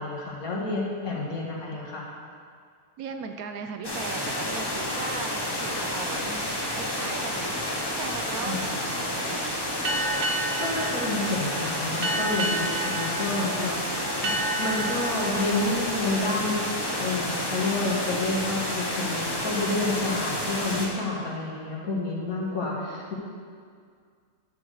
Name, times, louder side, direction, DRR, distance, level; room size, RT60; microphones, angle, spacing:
voice 1, 0.0-2.0 8.4-8.6 10.6-14.3 14.6-16.7 16.9-23.1, left 2 dB, 60° left, -3 dB, 2.0 m, -29 dB
voice 2, 1.5-1.9 3.0-7.6 8.0-9.6, right 5 dB, 70° right, 6 dB, 1.0 m, -38 dB
sound 1, 3.8-20.9, left 1 dB, 15° left, 1.0 m, -30 dB
sound 2, 9.9-17.1, right 2 dB, 40° right, 1.0 m, -32 dB
10.5 x 4.8 x 6.3 m, 2.1 s
omnidirectional pair, 1.7 m